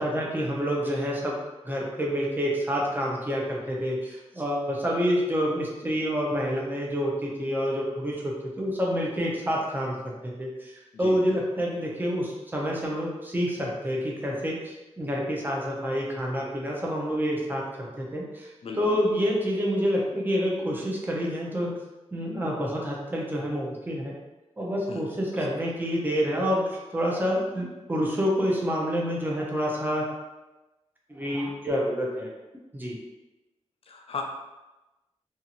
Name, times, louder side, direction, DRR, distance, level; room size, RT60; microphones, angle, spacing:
voice 1, 0.0-1.4 1.6-10.7 11.0-18.5 18.8-21.7 22.1-24.1 24.6-30.0 31.1-32.3 32.7-33.0, equal, 15° right, -3 dB, 0.6 m, -28 dB
voice 2, 18.6-19.0 24.9-25.0 25.4-25.5 33.9-34.2, left 5 dB, 60° left, 2 dB, 0.4 m, -36 dB
2.7 x 2.4 x 2.8 m, 1.1 s
wide cardioid pair, 115°, 11 cm